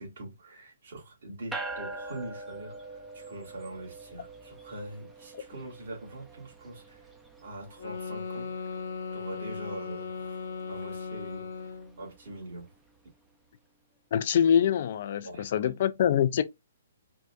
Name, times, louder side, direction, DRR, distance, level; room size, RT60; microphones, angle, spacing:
voice 1, 0.0-7.1 7.4-8.5 9.1-12.7 15.2-15.8, right 1 dB, 65° right, 2.4 m, -43 dB
sound 1, 1.5-13.1, right 3 dB, 5° right, 0.6 m, -45 dB
sound 2, 7.8-12.0, left 5 dB, 70° left, 0.9 m, -37 dB
voice 2, 14.1-16.4, left 9 dB, 55° left, 0.5 m, -25 dB
4.6 x 2.5 x 2.4 m
hypercardioid pair, 140°, 0 cm